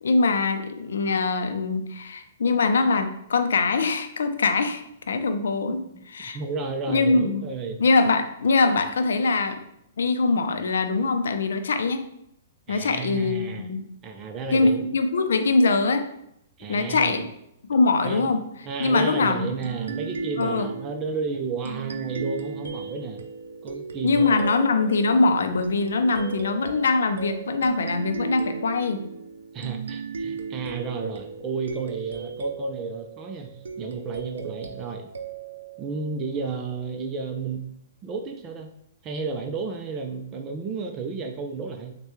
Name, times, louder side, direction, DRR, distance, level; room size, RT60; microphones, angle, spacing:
voice 1, 0.0-5.8 6.1-6.4 6.9-7.5 7.8-9.6 10.0-12.1 12.7-13.9 14.5-16.1 16.7-17.3 17.7-18.4 18.8-19.5 20.4-20.7 24.0-29.1, left 3 dB, 75° left, 8 dB, 0.5 m, -23 dB
voice 2, 6.2-7.8 12.7-13.7 14.0-14.8 16.6-17.2 18.0-18.3 18.6-23.2 23.6-24.4 29.5-35.1 35.8-37.7 38.0-38.7 39.0-42.0, right 4 dB, 30° right, 3 dB, 0.4 m, -32 dB
sound 1, 19.6-36.8, right 5 dB, 80° right, 0.5 m, -36 dB
6.4 x 2.2 x 3.1 m, 0.77 s
hypercardioid pair, 125°, 0 cm